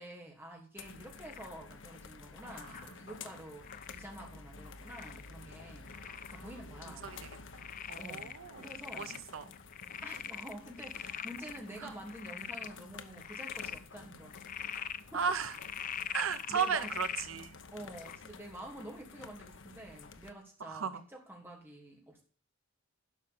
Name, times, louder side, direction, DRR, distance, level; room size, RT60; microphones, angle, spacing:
voice 1, 0.0-3.7 3.9-5.9 6.3-7.1 7.9-8.3 8.6-9.1 10.0-14.4 15.1-15.2 16.5-16.9 17.7-22.2, right 1 dB, 10° right, -1 dB, 2.9 m, -48 dB
sound 1, 0.8-20.3, left 4 dB, 65° left, 0.9 m, -51 dB
Frog, 1.2-1.6 2.5-2.9 3.6-4.1 4.9-5.3 5.9-6.4 6.9-7.0 7.6-9.2 9.5-11.6 12.1-12.7 13.1-13.8 14.3-15.0 15.5-17.3 17.9-18.2, left 9 dB, 40° left, 0.5 m, -42 dB
voice 2, 5.9-6.5 7.0-7.3 7.9-8.6 9.0-9.4 11.8-11.9 15.1-15.6 16.1-17.6 20.6-21.0, right 6 dB, 80° right, 12 dB, 0.7 m, -35 dB
12.0 x 5.2 x 6.9 m, 0.42 s
head